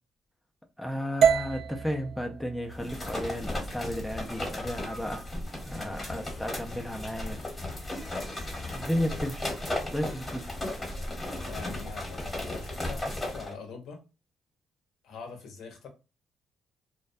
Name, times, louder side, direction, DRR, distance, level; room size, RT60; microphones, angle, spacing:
voice 1, 0.8-5.3 5.6-7.4 8.7-9.5 9.9-10.5, equal, ahead, 0.5 m, -33 dB
sound 1, 1.2-5.3, right 7 dB, 70° right, 0.3 m, -30 dB
sound 2, 2.7-13.5, left 1 dB, 20° left, 1.1 m, -35 dB
voice 2, 5.7-6.0 9.0-9.1 11.4-14.0 15.0-15.9, left 5 dB, 80° left, 0.7 m, -44 dB
2.2 x 2.2 x 2.5 m
cardioid pair, 90°, 0 cm